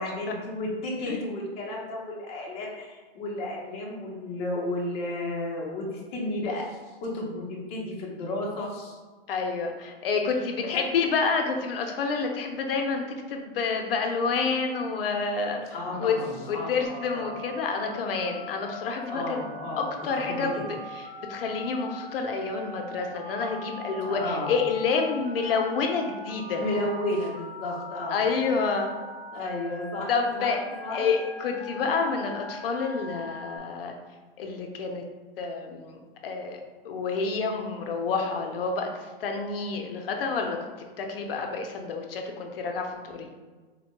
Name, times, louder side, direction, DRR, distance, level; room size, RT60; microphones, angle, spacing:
voice 1, 0.0-9.0 10.7-10.8 15.7-17.4 19.1-20.7 24.0-24.6 26.6-28.3 29.3-30.5 30.8-31.0, left 1 dB, 20° left, -3 dB, 0.5 m, -33 dB
voice 2, 9.3-13.0 13.3-15.6 16.0-16.1 16.5-19.4 19.8-20.6 21.3-26.7 28.1-28.9 30.1-30.6 30.9-33.9 34.4-35.0 35.4-36.0 36.2-38.9 39.2-40.6 41.0-43.3, left 4 dB, 70° left, 3 dB, 0.5 m, -28 dB
Telephone, 16.8-33.6, left 2 dB, 15° right, 1.0 m, -41 dB
3.6 x 2.1 x 2.9 m, 1.3 s
hypercardioid pair, 140°, 30 cm